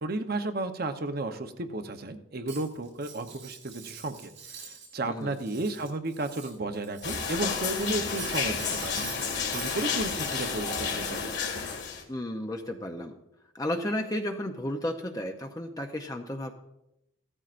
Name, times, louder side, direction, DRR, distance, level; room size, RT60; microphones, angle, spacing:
voice 1, 0.0-9.0 9.5-11.3, right 2 dB, 45° right, 7 dB, 0.8 m, -33 dB
Cutlery silverware, 2.5-4.9 5.2-7.4 7.7-9.9, right 6 dB, 90° right, 4.3 m, -45 dB
voice 2, 5.0-5.4 12.1-13.2 13.5-16.5, left 1 dB, 15° left, 4 dB, 0.6 m, -33 dB
sound 1, 7.0-12.0, left 5 dB, 55° left, 2.0 m, -31 dB
16.0 x 13.5 x 2.5 m, 0.87 s
head